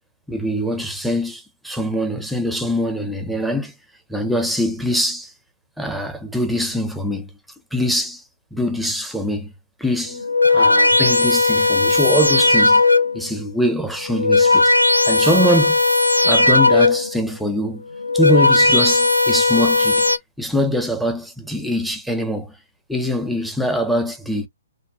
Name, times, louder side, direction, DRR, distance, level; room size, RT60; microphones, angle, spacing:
voice 1, 0.3-3.7 4.1-5.3 5.8-7.3 7.7-8.2 8.5-9.5 9.8-12.8 13.1-14.8 15.1-15.8 16.2-17.9 18.1-20.0 20.4-22.5 22.9-24.5, equal, ahead, 0.5 m, -23 dB
sound 1, 10.1-13.3 14.0-17.2 17.9-20.2, left 2 dB, 90° left, 0.4 m, -16 dB
3.5 x 2.1 x 2.3 m
figure-of-eight pair, 125°, 0 cm